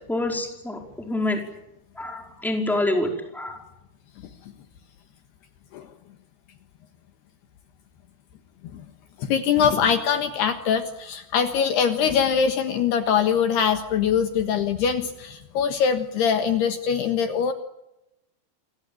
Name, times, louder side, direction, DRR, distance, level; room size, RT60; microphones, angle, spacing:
voice 1, 0.1-1.4 2.0-3.6, left 1 dB, ahead, 2 dB, 4.6 m, -27 dB
voice 2, 9.2-17.5, left 7 dB, 70° left, 7 dB, 3.3 m, -23 dB
27.5 x 22.0 x 9.0 m, 0.88 s
omnidirectional pair, 5.3 m